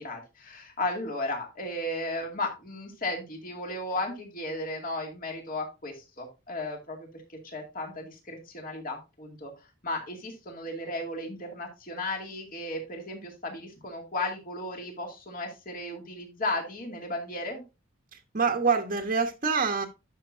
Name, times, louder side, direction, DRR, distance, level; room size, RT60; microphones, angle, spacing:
voice 1, 0.0-17.6, left 2 dB, 45° left, 2.2 m, -35 dB
voice 2, 18.1-19.9, right 5 dB, 40° right, 1.1 m, -26 dB
11.5 x 6.1 x 2.6 m
head